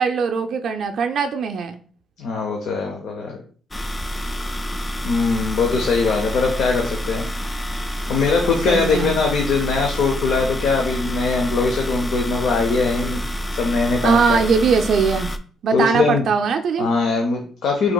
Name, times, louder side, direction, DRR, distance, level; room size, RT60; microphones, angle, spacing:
voice 1, 0.0-1.8 8.7-9.2 14.0-15.3 15.6-16.9, right 5 dB, 65° right, 5 dB, 0.3 m, -20 dB
voice 2, 2.2-3.4 5.0-7.2 8.1-13.2 13.6-14.2 15.7-16.2 16.8-17.9, left 4 dB, 75° left, 2 dB, 0.7 m, -21 dB
sound 1, 3.7-15.4, equal, 20° left, 0.4 m, -28 dB
5.9 x 2.8 x 2.3 m, 0.43 s
cardioid pair, 90°, 0 cm